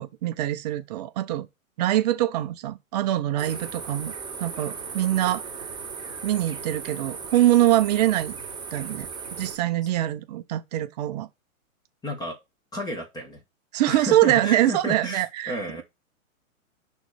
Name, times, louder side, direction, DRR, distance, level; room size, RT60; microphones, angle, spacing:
voice 1, 0.0-1.5 1.8-4.1 4.4-5.5 6.2-8.3 8.7-11.3 13.7-15.8, right 14 dB, 30° right, 0.5 m, -24 dB
sound 1, 3.4-9.6, right 5 dB, 10° right, 2.5 m, -37 dB
voice 2, 12.0-12.4 12.7-13.4 13.9-15.8, equal, 10° left, 1.4 m, -32 dB
6.3 x 3.1 x 4.9 m
hypercardioid pair, 140°, 42 cm